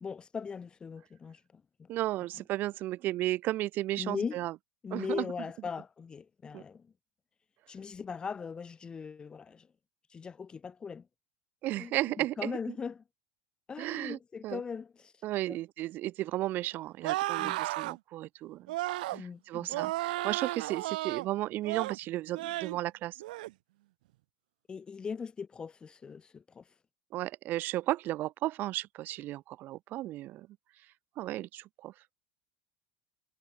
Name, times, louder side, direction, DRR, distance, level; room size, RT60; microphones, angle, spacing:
voice 1, 0.0-1.9 4.0-4.4 4.8-6.9 7.7-9.7 10.1-11.1 11.8-13.0 13.7-15.6 17.4-17.6 19.1-19.8 24.7-26.7, left 6 dB, 20° left, 1.7 m, -40 dB
voice 2, 1.9-4.5 4.9-5.2 6.5-6.6 11.6-12.6 13.8-14.2 14.4-14.6 15.2-18.7 19.0-23.2 27.1-30.5 31.2-31.9, right 15 dB, 45° right, 2.7 m, -34 dB
sound 1, 17.0-18.0 18.7-19.2 19.7-21.3 21.6-22.0 22.3-22.8 23.2-23.5, right 18 dB, 85° right, 1.0 m, -33 dB
supercardioid pair, 135°, 5 cm